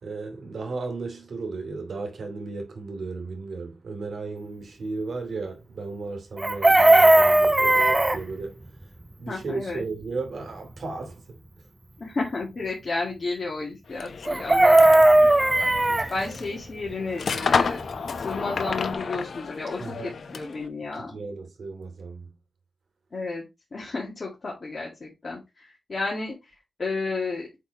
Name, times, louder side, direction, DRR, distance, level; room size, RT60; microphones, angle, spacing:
voice 1, 0.0-8.6 9.2-11.4 15.9-16.1 19.8-20.4 21.0-22.3, right 3 dB, 80° right, 2.5 m, -35 dB
Chicken rooster, 6.4-8.2 14.3-16.1 18.3-18.4 18.7-18.9, right 1 dB, 15° right, 0.5 m, -17 dB
voice 2, 9.3-9.8 12.0-15.0 16.1-17.8 18.2-21.2 23.1-23.4 23.7-26.3 26.8-27.5, left 3 dB, 45° left, 2.3 m, -32 dB
sound 1, 13.9-20.7, left 5 dB, 75° left, 0.8 m, -31 dB
8.2 x 3.9 x 4.0 m
wide cardioid pair, 125°, 0 cm